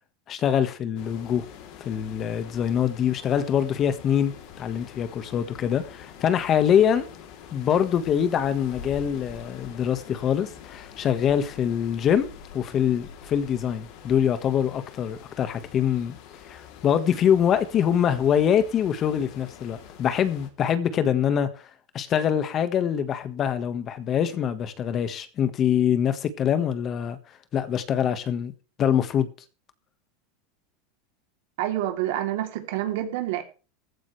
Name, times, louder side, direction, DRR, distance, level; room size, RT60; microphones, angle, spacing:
voice 1, 0.3-1.4 1.8-7.1 7.5-12.3 12.5-16.1 16.5-21.5 21.9-27.2 27.5-28.5 28.8-29.3, left 9 dB, 35° left, 1.6 m, -24 dB
sound 1, 1.0-20.5, left 8 dB, 55° left, 3.3 m, -45 dB
voice 2, 31.6-33.4, right 13 dB, 70° right, 3.2 m, -27 dB
15.0 x 14.5 x 3.4 m
supercardioid pair, 130°, 0 cm